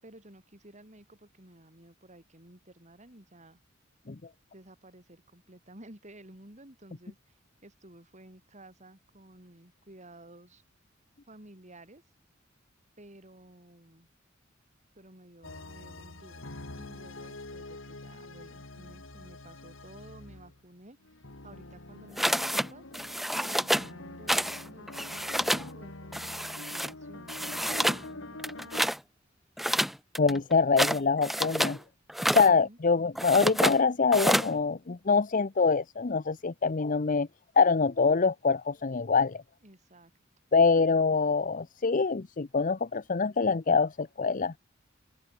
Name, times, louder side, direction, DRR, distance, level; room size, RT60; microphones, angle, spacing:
voice 1, 0.0-3.6 4.5-10.6 11.3-12.0 13.0-14.1 15.0-16.5 16.8-21.2 21.4-22.9 23.3-28.9 32.2-32.8 39.6-40.1, right 1 dB, 35° right, 5.5 m, -53 dB
sound 1, 15.4-20.7 21.0-28.9, left 2 dB, 70° left, 2.8 m, -45 dB
sound 2, 22.2-22.7 22.9-23.9 24.3-24.6 24.9-25.7 26.1-26.9 27.3-28.0 28.4-29.0 29.6-31.8 32.1-32.5 33.2-33.8 34.1-34.5, equal, ahead, 0.7 m, -28 dB
voice 2, 30.2-31.8 32.3-37.3 37.6-39.4 40.5-44.5, left 4 dB, 40° left, 0.7 m, -25 dB
head